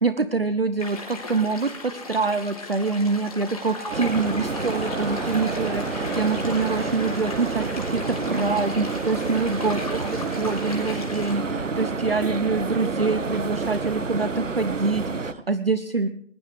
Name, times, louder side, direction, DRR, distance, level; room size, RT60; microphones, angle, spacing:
voice 1, 0.0-16.1, right 4 dB, 50° right, 13 dB, 0.8 m, -25 dB
sound 1, 0.8-11.3, left 3 dB, 30° left, 3.7 m, -37 dB
sound 2, 3.5-9.8 10.2-10.7, left 1 dB, 10° left, 2.2 m, -39 dB
sound 3, 3.9-15.3, right 4 dB, 90° right, 1.4 m, -29 dB
21.5 x 20.5 x 3.3 m, 0.69 s
figure-of-eight pair, 180°, 37 cm